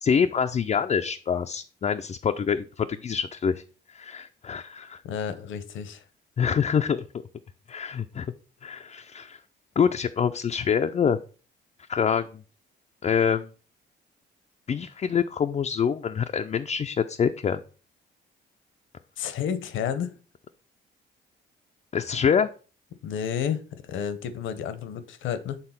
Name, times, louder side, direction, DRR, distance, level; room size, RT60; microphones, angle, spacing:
voice 1, 0.0-3.6 3.9-5.0 6.4-7.0 7.7-8.3 8.6-9.4 9.8-11.2 11.9-12.2 13.0-13.5 14.7-17.6 21.9-22.5, left 7 dB, 35° left, 0.4 m, -25 dB
voice 2, 5.0-6.0 19.2-20.1 23.0-25.6, left 8 dB, 80° left, 0.9 m, -31 dB
6.8 x 3.7 x 5.7 m
cardioid pair, 90°, 20 cm